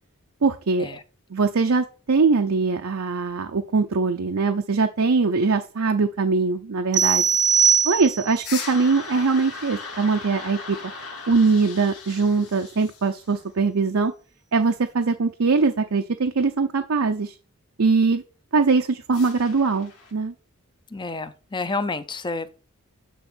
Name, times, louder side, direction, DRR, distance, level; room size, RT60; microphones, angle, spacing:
voice 1, 0.4-0.9 1.3-7.3 7.8-10.8 11.3-14.1 14.5-17.3 17.8-18.2 18.5-20.3, right 4 dB, 65° right, 5 dB, 0.6 m, -22 dB
sound 1, 6.9-8.5, right 7 dB, 35° right, 0.7 m, -20 dB
sound 2, 8.4-13.4 19.1-20.1, left 4 dB, 80° left, 2.4 m, -38 dB
voice 2, 20.9-22.5, left 3 dB, 20° left, 12 dB, 0.6 m, -29 dB
10.0 x 3.6 x 6.1 m, 0.36 s
head